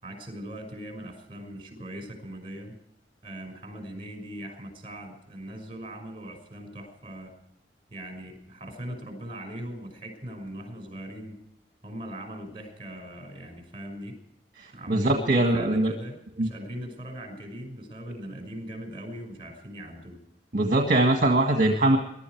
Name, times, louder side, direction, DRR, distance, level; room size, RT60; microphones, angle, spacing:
voice 1, 0.0-2.8 3.2-7.4 7.9-11.4 11.8-14.2 14.7-20.2, right 1 dB, 30° right, 4 dB, 5.8 m, -40 dB
voice 2, 14.6-15.9 16.4-16.5 20.5-22.0, right 2 dB, 50° right, 3 dB, 1.7 m, -22 dB
23.0 x 12.5 x 4.7 m, 0.79 s
head